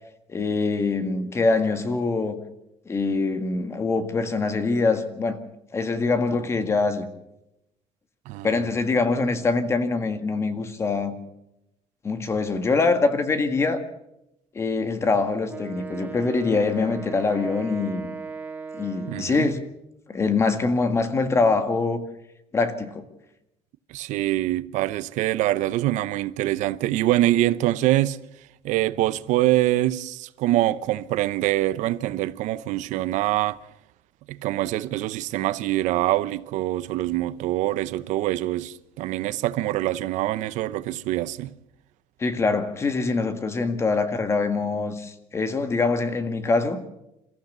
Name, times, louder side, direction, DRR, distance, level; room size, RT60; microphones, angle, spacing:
voice 1, 0.3-2.4 2.9-5.4 5.7-7.1 8.4-11.1 12.0-13.8 14.6-18.1 18.7-19.6 20.1-22.0 22.5-23.0 42.2-46.8, left 3 dB, 20° left, 1.8 m, -24 dB
voice 2, 8.3-8.6 19.1-19.5 23.9-28.2 28.6-33.6 34.3-41.5, right 15 dB, 70° right, 0.8 m, -24 dB
Wind instrument woodwind instrument, 15.5-19.5, right 4 dB, 15° right, 1.7 m, -37 dB
28.0 x 14.5 x 6.8 m
cardioid pair, 170°, 13 cm